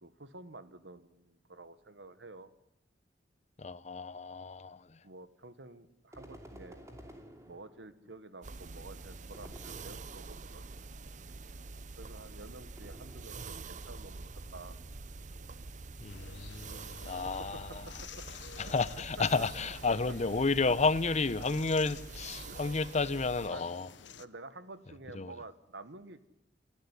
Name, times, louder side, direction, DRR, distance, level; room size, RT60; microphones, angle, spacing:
voice 1, 0.0-2.5 5.0-6.8 7.5-10.6 12.0-14.8 17.0-17.3 18.6-19.0 19.9-20.0 21.9-22.0 22.4-22.6 23.5-23.6 24.2-26.3, right 2 dB, 85° right, 1.5 m, -50 dB
voice 2, 3.6-5.0 16.0-17.9 18.6-23.9 25.1-25.3, left 3 dB, 40° left, 0.8 m, -31 dB
sound 1, 6.1-8.1 9.3-10.5 12.8-13.8, equal, 20° right, 2.9 m, -52 dB
sound 2, 8.4-23.5, right 3 dB, 45° right, 0.7 m, -46 dB
sound 3, 16.1-24.2, left 6 dB, 90° left, 0.8 m, -51 dB
27.5 x 12.0 x 9.9 m
head